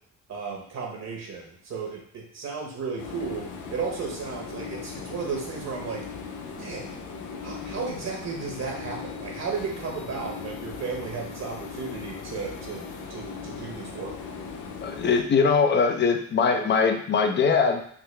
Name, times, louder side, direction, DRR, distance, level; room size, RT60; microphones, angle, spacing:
voice 1, 0.3-3.4 3.7-6.0 6.6-6.9 7.4-14.2, right 5 dB, 60° right, -1 dB, 1.0 m, -34 dB
sound 1, 3.0-15.2, left 5 dB, 85° left, 0.6 m, -38 dB
voice 2, 14.8-17.8, left 5 dB, 35° left, 5 dB, 0.6 m, -22 dB
3.7 x 2.3 x 3.2 m, 0.65 s
cardioid pair, 90°, 30 cm